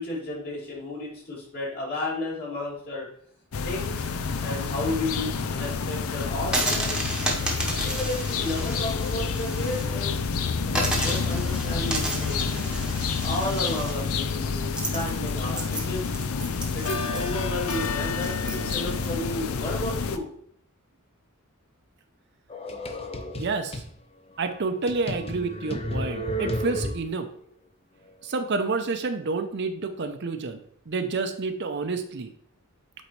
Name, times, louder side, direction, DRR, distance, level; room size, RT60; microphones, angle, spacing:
voice 1, 0.0-3.1 3.6-4.0 4.4-6.9 7.8-12.8 13.2-16.1 16.7-20.3, left 1 dB, 45° left, -4 dB, 2.5 m, -33 dB
sound 1, 3.5-20.2, left 5 dB, 80° left, 0.5 m, -29 dB
sound 2, 6.4-9.8 10.2-10.3 10.7-19.1, right 1 dB, 5° right, 1.0 m, -32 dB
sound 3, 22.5-23.9 24.4-24.5 24.9-27.3, equal, 25° left, 0.5 m, -32 dB
voice 2, 23.4-23.8 24.4-27.3 28.2-30.6 30.9-32.3, right 3 dB, 55° right, 7 dB, 0.6 m, -29 dB
8.2 x 4.0 x 3.1 m, 0.65 s
head